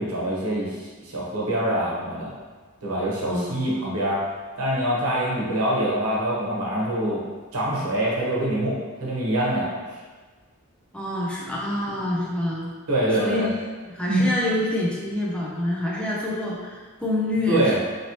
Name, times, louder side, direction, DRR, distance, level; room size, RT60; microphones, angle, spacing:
voice 1, 0.0-2.3 2.8-4.3 4.6-7.2 7.5-10.0 12.9-13.5 14.1-14.2 17.5-17.8, right 1 dB, 85° right, -5 dB, 0.9 m, -25 dB
voice 2, 3.2-3.7 10.9-12.7 13.2-13.5 13.8-17.8, left 1 dB, 5° left, -5 dB, 0.4 m, -27 dB
2.9 x 2.8 x 2.9 m, 1.4 s
head